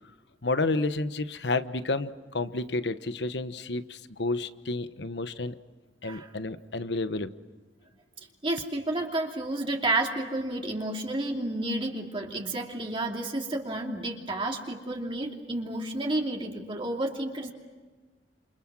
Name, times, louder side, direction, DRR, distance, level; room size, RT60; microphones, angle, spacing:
voice 1, 0.4-5.6 6.0-7.3, left 2 dB, 70° left, 12 dB, 1.2 m, -30 dB
voice 2, 8.4-17.5, right 2 dB, 30° right, 0 dB, 2.8 m, -31 dB
29.0 x 28.5 x 6.2 m, 1.3 s
head